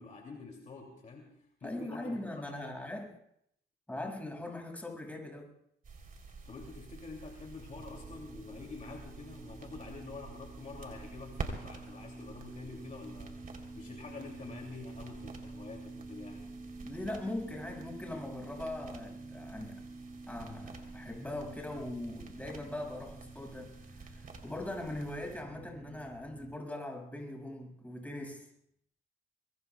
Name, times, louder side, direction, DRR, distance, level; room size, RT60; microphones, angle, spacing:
voice 1, 0.0-2.2 2.6-2.8 6.4-16.5, left 4 dB, 40° left, 0 dB, 2.7 m, -47 dB
voice 2, 1.6-3.1 3.9-5.5 16.8-19.8 20.3-23.7 24.0-24.2 24.4-28.5, left 1 dB, 5° left, 1 dB, 6.5 m, -40 dB
sound 1, 5.8-25.4, right 4 dB, 45° right, 3.6 m, -49 dB
sound 2, 7.8-26.6, right 2 dB, 10° right, 2.0 m, -49 dB
25.0 x 23.0 x 2.4 m, 0.73 s
cardioid pair, 90°, 20 cm